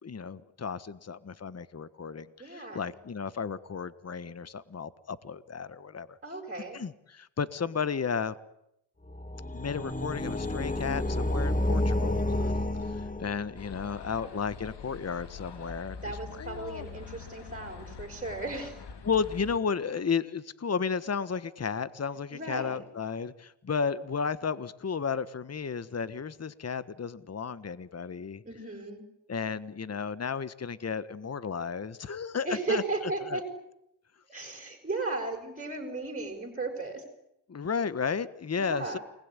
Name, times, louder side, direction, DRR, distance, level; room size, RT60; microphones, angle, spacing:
voice 1, 0.0-6.1 6.7-8.3 9.5-12.5 12.9-16.8 19.0-28.4 29.3-33.4 37.5-39.0, left 6 dB, 35° left, 15 dB, 1.5 m, -33 dB
voice 2, 2.4-2.8 6.2-6.8 16.0-18.8 22.3-22.8 28.4-29.1 32.4-33.4 34.3-37.0 38.6-39.0, right 3 dB, 20° right, 3 dB, 7.0 m, -35 dB
sound 1, 9.1-13.7, left 1 dB, 20° left, 1.8 m, -30 dB
sound 2, 13.6-19.6, left 5 dB, 65° left, 3.3 m, -44 dB
29.0 x 20.5 x 9.9 m, 0.81 s
cardioid pair, 75°, 44 cm